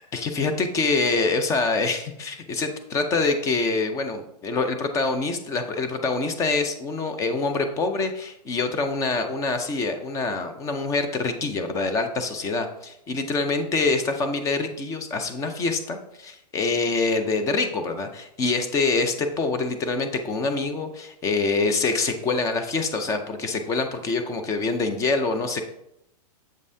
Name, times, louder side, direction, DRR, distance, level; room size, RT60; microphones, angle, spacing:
voice 1, 0.1-25.6, left 3 dB, 15° left, 7 dB, 0.5 m, -25 dB
7.4 x 5.2 x 2.7 m, 0.79 s
hypercardioid pair, 150°, 21 cm